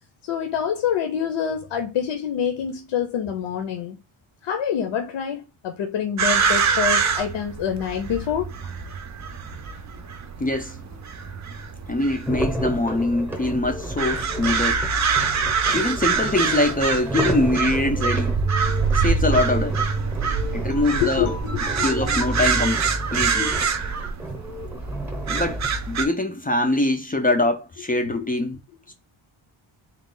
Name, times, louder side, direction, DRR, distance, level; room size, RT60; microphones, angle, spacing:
voice 1, 0.2-4.0 4.4-8.5 20.6-22.7 28.1-28.3, left 8 dB, 70° left, 0.8 m, -27 dB
sound 1, 6.2-26.0, right 5 dB, 35° right, 0.5 m, -25 dB
voice 2, 10.4-10.8 11.9-14.8 15.7-18.4 18.9-19.8 20.5-21.3 21.8-22.8 23.1-23.6 25.3-28.6 28.9-29.0, left 2 dB, 20° left, 0.4 m, -23 dB
sound 2, 12.2-25.7, right 1 dB, 5° right, 0.7 m, -33 dB
3.9 x 2.4 x 3.7 m
wide cardioid pair, 135°, 50 cm